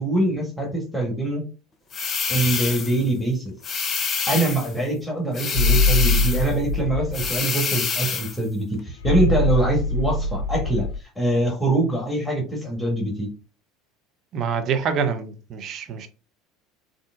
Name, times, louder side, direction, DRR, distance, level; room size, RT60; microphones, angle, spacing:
voice 1, 0.0-1.4 2.3-3.5 4.3-10.9 11.2-13.3, right 2 dB, 5° left, 1.3 m, -24 dB
sound 1, 1.9-3.0 3.6-4.7 5.3-6.5 7.1-8.4, left 5 dB, 35° left, 0.7 m, -26 dB
sound 2, 5.5-7.4 9.0-11.0, left 2 dB, 75° left, 0.4 m, -22 dB
voice 2, 14.3-16.1, right 6 dB, 45° right, 0.6 m, -26 dB
3.7 x 2.5 x 2.4 m
figure-of-eight pair, 70°, 0 cm